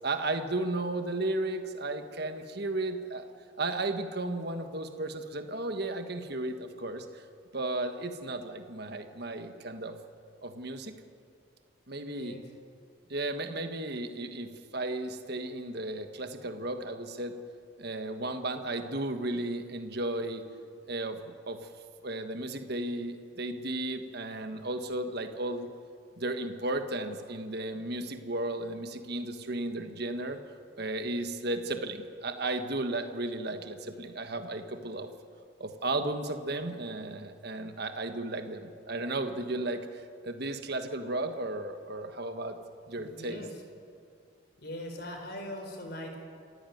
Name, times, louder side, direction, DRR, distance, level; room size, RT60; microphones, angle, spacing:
voice 1, 0.0-3.3 3.6-7.2 7.5-9.9 10.4-10.9 11.9-12.4 13.1-17.3 17.8-20.4 20.9-21.2 21.5-21.7 22.0-25.7 26.2-30.4 30.8-35.1 35.6-42.6 42.9-43.4, right 2 dB, 50° right, 7 dB, 1.5 m, -34 dB
voice 2, 12.1-12.5 42.9-43.6 44.6-46.2, left 1 dB, 50° left, 4 dB, 4.4 m, -41 dB
27.0 x 15.0 x 9.4 m, 2.3 s
head